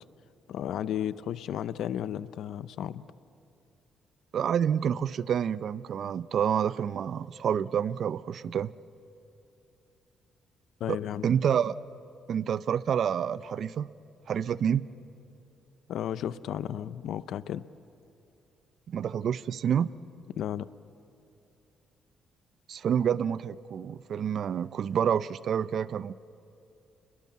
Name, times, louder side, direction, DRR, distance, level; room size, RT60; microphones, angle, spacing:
voice 1, 0.5-3.1 10.8-11.3 15.9-17.6 20.4-20.7, left 10 dB, 75° left, 16 dB, 0.6 m, -33 dB
voice 2, 4.3-8.7 10.9-11.8 12.3-13.9 14.3-14.8 18.9-19.9 22.7-26.1, right 8 dB, 60° right, 17 dB, 0.6 m, -28 dB
29.0 x 21.5 x 8.5 m, 2.8 s
cardioid pair, 90°, 0 cm